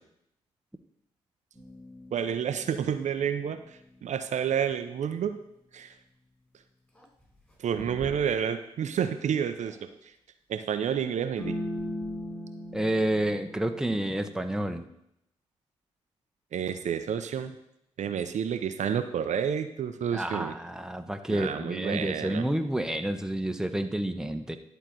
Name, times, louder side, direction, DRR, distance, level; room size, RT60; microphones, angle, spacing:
sound 1, 1.5-3.9 7.0-7.1 7.8-8.3 8.9-9.8 11.4-14.4, equal, 10° left, 4.3 m, -40 dB
voice 1, 2.1-5.4 5.7-5.9 7.6-9.9 10.5-11.6 16.5-17.5 18.0-20.5 21.3-22.4, right 8 dB, 65° right, 9 dB, 0.7 m, -30 dB
voice 2, 12.7-14.9 20.1-24.6, right 1 dB, 5° right, 7 dB, 1.0 m, -29 dB
11.0 x 4.0 x 7.7 m, 0.79 s
hypercardioid pair, 45°, 13 cm